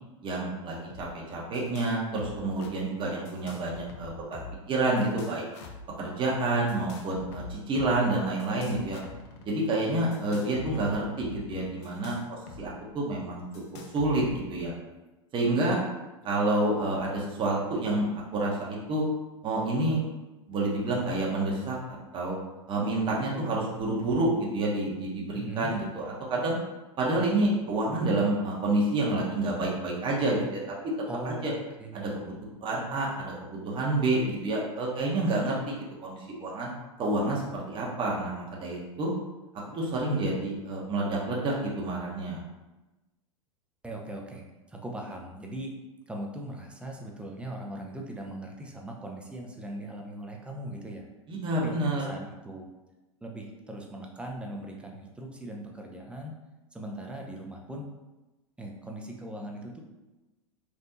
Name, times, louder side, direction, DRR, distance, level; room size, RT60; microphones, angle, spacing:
voice 1, 0.2-5.4 6.0-9.0 9.4-13.4 13.9-14.7 15.3-15.8 16.2-18.1 18.3-19.0 19.4-20.0 20.5-22.4 22.7-26.0 26.3-26.6 27.0-30.6 31.2-31.5 31.9-32.3 32.6-35.7 36.0-36.7 37.0-39.1 39.7-42.4 51.3-52.1, right 2 dB, 30° right, -3 dB, 0.8 m, -28 dB
sound 1, 0.9-1.1 1.3-1.9 2.2-2.7 3.2-4.6 5.0-5.9 6.7-7.9 8.4-9.5 10.1-12.6 12.9-13.0 13.5-14.6, left 4 dB, 60° left, 0.6 m, -45 dB
voice 2, 25.3-25.7 31.1-32.4 43.8-45.7 46.1-51.1 51.6-52.6 53.2-56.3 56.7-57.8 58.6-59.8, right 1 dB, 5° right, 0 dB, 0.5 m, -40 dB
3.5 x 2.5 x 2.7 m, 1.1 s
hypercardioid pair, 95°, 17 cm